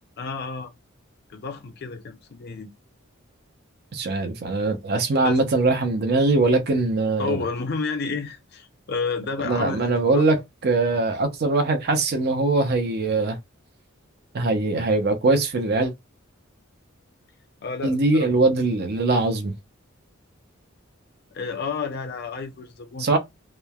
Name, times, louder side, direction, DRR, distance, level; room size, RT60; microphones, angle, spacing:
voice 1, 0.2-0.7 1.3-2.7 5.2-5.4 7.2-10.2 17.6-18.3 21.3-23.2, left 4 dB, 50° left, 0.5 m, -31 dB
voice 2, 3.9-7.4 9.4-10.4 10.6-13.4 14.3-15.9 17.8-19.5 23.0-23.2, right 2 dB, 50° right, 0.5 m, -21 dB
3.0 x 2.0 x 2.2 m
head